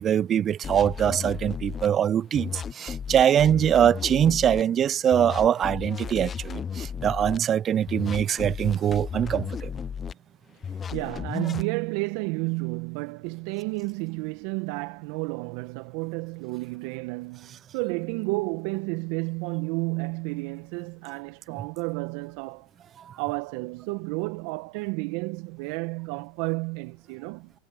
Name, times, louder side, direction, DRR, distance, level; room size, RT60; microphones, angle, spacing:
voice 1, 0.0-9.7 23.0-23.2, right 9 dB, 35° right, 0.6 m, -23 dB
sound 1, 0.6-1.9 2.3-4.6 5.1-7.4 7.9-10.1 10.6-11.7, left 7 dB, 25° left, 0.9 m, -34 dB
voice 2, 10.9-22.7 23.2-27.5, right 27 dB, 60° right, 1.5 m, -31 dB
hypercardioid pair, 95°, 0 cm